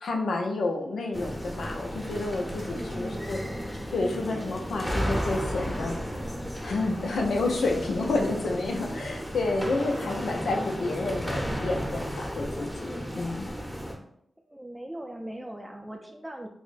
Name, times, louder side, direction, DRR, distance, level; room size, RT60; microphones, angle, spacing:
voice 1, 0.0-3.4 3.9-5.9 6.6-13.5, left 2 dB, 85° left, 1 dB, 0.5 m, -30 dB
sound 1, 1.1-13.9, equal, 10° left, 0.9 m, -34 dB
voice 2, 2.7-3.2 14.4-16.5, right 1 dB, 15° right, 2 dB, 0.4 m, -40 dB
4.8 x 2.1 x 2.5 m, 0.71 s
cardioid pair, 45°, 0 cm